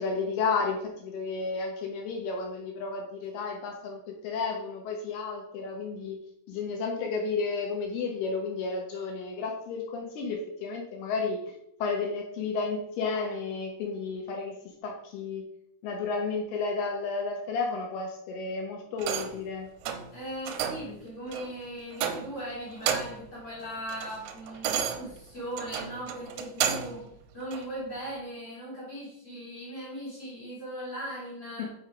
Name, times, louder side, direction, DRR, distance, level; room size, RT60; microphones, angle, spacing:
voice 1, 0.0-6.2 6.5-11.4 11.8-14.6 14.8-15.4 15.8-19.7, left 4 dB, 80° left, 1 dB, 2.3 m, -32 dB
sound 1, 19.0-19.4 19.8-20.1 20.5-20.9 21.3-21.5 21.9-22.4 22.7-23.3 23.7-27.0 27.5-27.6, right 8 dB, 85° right, 3.0 m, -32 dB
voice 2, 20.1-31.7, right 1 dB, 35° left, -7 dB, 2.4 m, -39 dB
6.5 x 5.7 x 4.9 m, 0.77 s
omnidirectional pair, 5.8 m